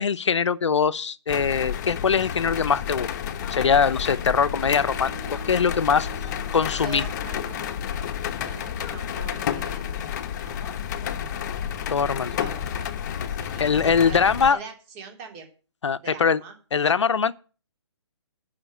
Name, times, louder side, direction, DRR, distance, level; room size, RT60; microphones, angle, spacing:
voice 1, 0.0-3.1 3.5-5.1 5.5-6.1 6.5-7.0 11.9-12.4 13.6-14.6 15.8-16.4 16.7-17.3, left 6 dB, 75° left, 0.8 m, -22 dB
sound 1, 1.3-14.5, left 9 dB, 40° left, 1.1 m, -31 dB
sound 2, 3.3-3.6 5.2-5.4 6.7-7.0 8.8-9.0 10.6-10.7 12.3-12.8, left 8 dB, 15° left, 1.6 m, -43 dB
Bowed string instrument, 3.9-7.8, right 12 dB, 60° right, 1.3 m, -46 dB
voice 2, 6.8-7.6 8.4-10.1 10.4-11.5 12.3-12.9 13.3-15.5 16.0-16.6, right 5 dB, 25° right, 3.4 m, -42 dB
11.0 x 6.0 x 7.7 m
hypercardioid pair, 150°, 15 cm